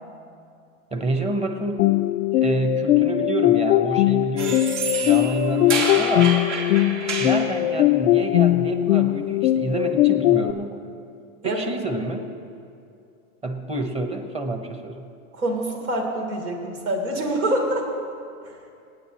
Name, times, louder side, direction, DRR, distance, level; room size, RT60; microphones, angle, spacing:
voice 1, 0.9-1.9 2.3-4.7 5.0-6.4 7.2-10.8 11.4-12.2 13.4-15.0, right 2 dB, 15° right, 6 dB, 1.0 m, -28 dB
sound 1, 1.8-10.5, left 14 dB, 80° left, 0.5 m, -20 dB
sound 2, 4.4-7.5, right 4 dB, 60° right, 2.5 m, -28 dB
voice 2, 15.3-17.9, right 1 dB, 85° right, 0 dB, 3.4 m, -25 dB
27.0 x 9.4 x 3.0 m, 2.5 s
hypercardioid pair, 125°, 42 cm